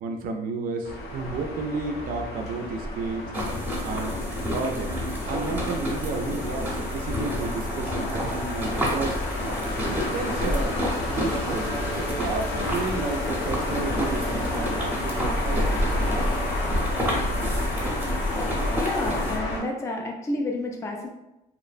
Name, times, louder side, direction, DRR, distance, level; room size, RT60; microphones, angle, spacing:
voice 1, 0.0-3.3 3.8-4.2 4.5-4.9 5.2-9.3 9.9-10.8 11.1-11.7 12.1-16.3, right 4 dB, 55° right, 4 dB, 0.4 m, -32 dB
sound 1, 0.8-19.6, left 1 dB, 70° left, 0.7 m, -30 dB
sound 2, 3.3-19.4, left 1 dB, 10° right, 0.7 m, -30 dB
voice 2, 18.8-21.1, left 2 dB, 15° left, 1 dB, 0.3 m, -30 dB
2.9 x 2.0 x 2.4 m, 0.92 s
cardioid pair, 110°, 17 cm